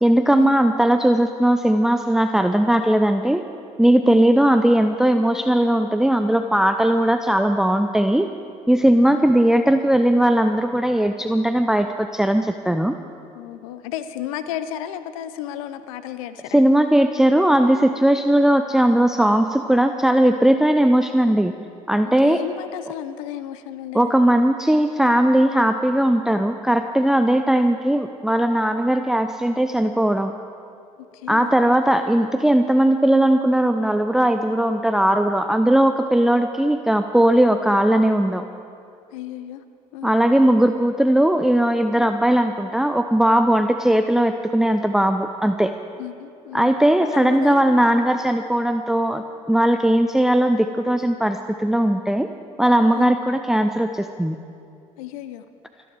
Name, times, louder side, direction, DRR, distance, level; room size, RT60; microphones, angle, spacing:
voice 1, 0.0-3.4 3.8-8.3 8.7-13.0 16.5-21.5 21.9-22.4 23.9-30.3 31.3-38.4 40.0-45.7 46.5-52.3 52.6-54.4, right 1 dB, 5° right, 8 dB, 0.6 m, -18 dB
voice 2, 13.3-16.6 22.0-24.2 31.1-31.5 39.1-39.6 39.9-40.1 46.0-46.7 47.0-47.8 52.9-53.2 55.0-55.4, left 11 dB, 75° left, 12 dB, 0.6 m, -33 dB
25.0 x 10.5 x 4.7 m, 2.5 s
hypercardioid pair, 55°, 18 cm